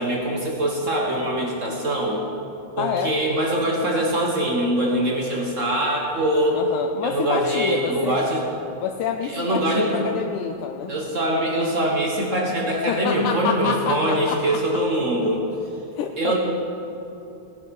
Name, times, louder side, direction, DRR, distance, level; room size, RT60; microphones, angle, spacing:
voice 1, 0.0-2.3 2.8-6.6 7.0-8.4 9.2-10.1 10.9-15.4 16.2-16.4, right 1 dB, 55° right, -1 dB, 0.8 m, -23 dB
voice 2, 2.8-3.2 6.5-8.2 8.8-10.9 12.7-14.6 16.0-16.4, left 7 dB, 80° left, 5 dB, 2.0 m, -28 dB
17.5 x 10.5 x 5.5 m, 2.9 s
omnidirectional pair, 3.7 m